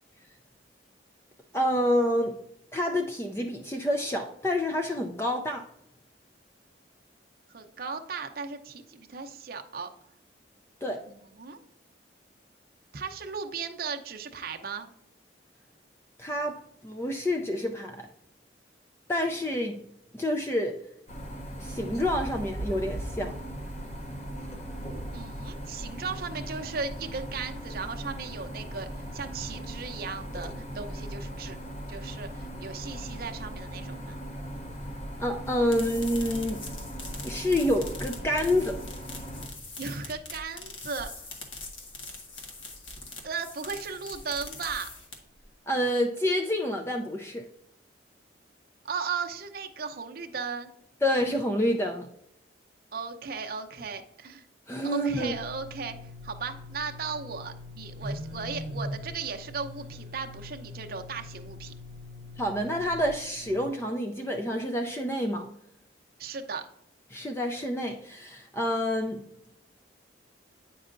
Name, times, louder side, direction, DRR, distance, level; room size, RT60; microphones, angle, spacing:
voice 1, 1.5-2.4 2.7-5.7 10.8-11.0 16.2-18.1 19.1-19.8 20.1-20.8 21.6-23.3 35.2-36.6 37.2-38.8 45.7-47.5 51.0-52.1 54.7-55.4 62.4-65.5 67.1-69.2, left 1 dB, 15° left, 4 dB, 0.3 m, -28 dB
voice 2, 7.5-9.9 11.1-11.6 12.9-14.9 25.1-31.6 31.9-34.2 39.8-41.3 43.2-44.9 48.8-50.7 52.9-54.4 54.8-56.0 56.2-61.7 66.2-66.7, right 5 dB, 50° right, 5 dB, 0.6 m, -36 dB
sound 1, 21.1-39.5, equal, 35° left, 0.8 m, -38 dB
sound 2, 35.5-45.4, left 3 dB, 85° left, 1.4 m, -43 dB
sound 3, 55.1-63.7, left 1 dB, 90° right, 0.7 m, -42 dB
8.9 x 5.4 x 2.5 m, 0.75 s
head